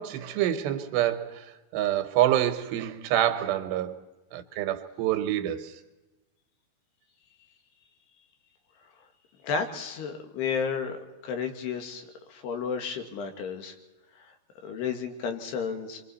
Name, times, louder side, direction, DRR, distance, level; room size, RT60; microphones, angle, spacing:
voice 1, 0.0-4.0 4.3-5.8, right 12 dB, 90° right, 3.3 m, -27 dB
voice 2, 9.4-13.8 14.6-16.0, left 6 dB, 75° left, 3.7 m, -32 dB
26.5 x 23.5 x 4.2 m
omnidirectional pair, 4.8 m